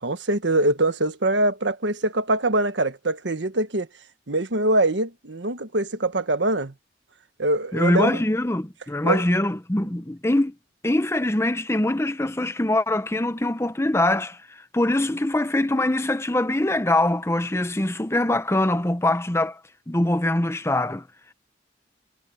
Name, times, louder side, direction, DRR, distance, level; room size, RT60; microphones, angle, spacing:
voice 1, 0.0-3.9 4.3-6.7 7.4-8.2 9.0-9.3, right 2 dB, 75° right, 1.5 m, -23 dB
voice 2, 7.7-10.5 10.8-19.6 19.9-21.0, left 1 dB, 15° left, 0.8 m, -23 dB
head